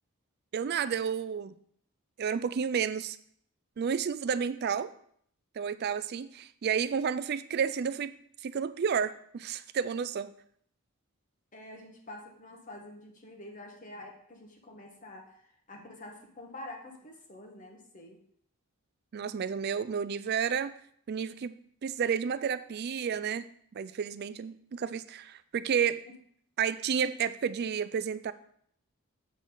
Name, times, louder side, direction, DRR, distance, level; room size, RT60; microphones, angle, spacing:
voice 1, 0.5-1.5 2.2-3.2 3.8-4.9 5.6-8.1 8.4-10.3 19.1-20.7 21.1-21.6 21.8-26.0 26.6-28.3, right 7 dB, 45° right, 14 dB, 0.3 m, -31 dB
voice 2, 11.5-18.2, left 1 dB, 35° left, 1 dB, 1.1 m, -47 dB
7.3 x 6.3 x 3.8 m, 0.64 s
head